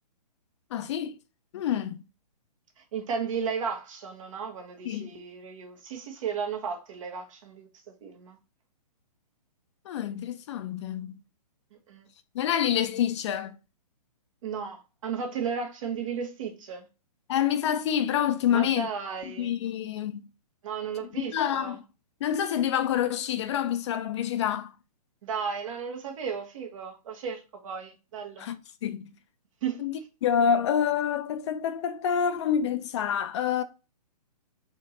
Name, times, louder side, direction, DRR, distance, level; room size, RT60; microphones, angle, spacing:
voice 1, 0.7-1.1 1.5-2.0 4.8-5.1 9.9-11.1 12.3-13.5 17.3-18.9 19.4-20.3 21.2-21.8 22.2-24.7 28.4-28.6 28.8-29.1 29.8-29.9 30.2-33.6, left 9 dB, 45° left, 0.6 m, -27 dB
voice 2, 2.8-7.7 8.0-8.4 11.9-12.1 14.4-16.9 18.5-19.5 20.6-21.8 25.2-28.5 29.6-29.9, right 6 dB, 50° right, 1.3 m, -34 dB
4.3 x 2.9 x 4.2 m
hypercardioid pair, 135°, 21 cm